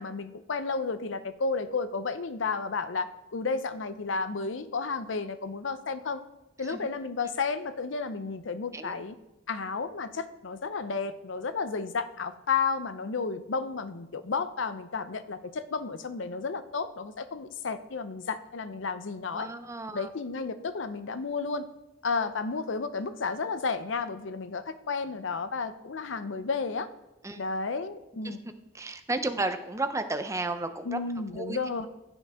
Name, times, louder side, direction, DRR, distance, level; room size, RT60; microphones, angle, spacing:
voice 1, 0.0-6.2 6.6-9.2 9.5-19.5 19.9-21.7 22.0-26.9 27.4-28.4 30.8-31.9, left 4 dB, 75° left, 11 dB, 0.6 m, -32 dB
voice 2, 19.3-20.1 27.2-27.4 28.2-28.4 28.7-31.0 31.3-31.6, right 2 dB, 15° right, 9 dB, 0.6 m, -33 dB
15.0 x 8.1 x 3.6 m, 0.97 s
head